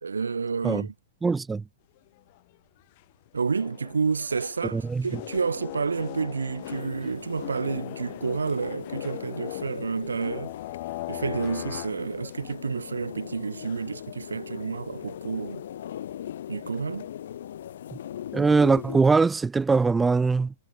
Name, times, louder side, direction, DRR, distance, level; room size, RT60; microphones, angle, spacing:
voice 1, 0.0-0.9 3.3-10.5 11.1-15.6 16.5-17.1, right 5 dB, 85° right, 0.4 m, -30 dB
voice 2, 1.2-1.6 4.7-5.2 18.3-20.5, right 4 dB, 10° right, 0.3 m, -22 dB
sound 1, 2.1-2.5 3.0-3.1 3.2-12.5, left 21 dB, 50° left, 2.7 m, -40 dB
sound 2, 6.6-19.0, left 10 dB, 65° left, 1.1 m, -39 dB
hypercardioid pair, 110°, 0 cm